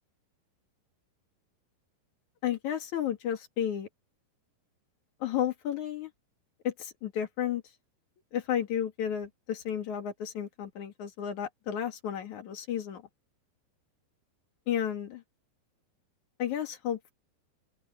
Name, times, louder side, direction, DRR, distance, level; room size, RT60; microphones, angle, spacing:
voice 1, 2.4-3.9 5.2-6.1 6.6-7.6 8.3-13.0 14.7-15.2 16.4-17.1, left 9 dB, 55° left, 2.6 m, -32 dB
open air
omnidirectional pair, 5.1 m